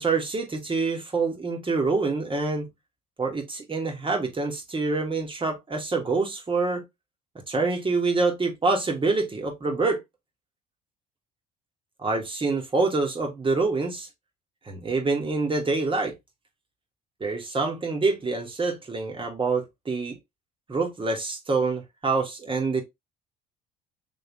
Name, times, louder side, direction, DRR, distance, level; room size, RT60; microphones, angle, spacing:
voice 1, 0.0-2.7 3.2-6.8 7.5-10.0 12.0-14.1 14.7-16.1 17.2-20.2 20.7-22.8, right 3 dB, 25° right, 1.6 m, -26 dB
3.7 x 3.1 x 3.0 m
hypercardioid pair, 60°, 20 cm